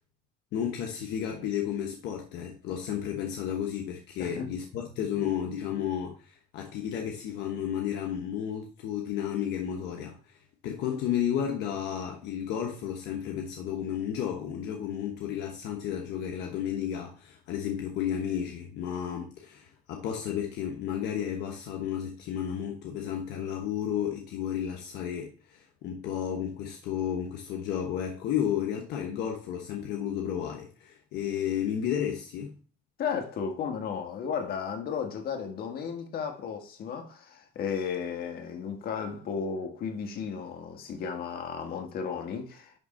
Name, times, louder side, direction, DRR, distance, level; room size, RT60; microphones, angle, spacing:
voice 1, 0.5-10.4 10.6-32.6, left 9 dB, 85° left, 1.1 m, -32 dB
voice 2, 4.2-4.5 33.0-42.8, left 6 dB, 65° left, 1.7 m, -34 dB
10.5 x 3.6 x 4.3 m
cardioid pair, 110°, 17 cm